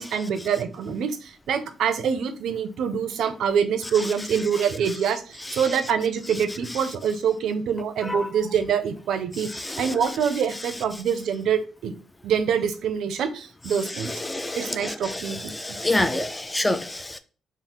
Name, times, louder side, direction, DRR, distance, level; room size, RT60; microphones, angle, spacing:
voice 1, 0.0-11.9 12.2-14.1 14.6-15.8, right 7 dB, 75° right, 10 dB, 0.5 m, -25 dB
voice 2, 14.3-14.9 15.6-17.2, left 1 dB, 10° left, 10 dB, 0.3 m, -26 dB
3.6 x 2.0 x 4.3 m, 0.37 s
cardioid pair, 90°, 0 cm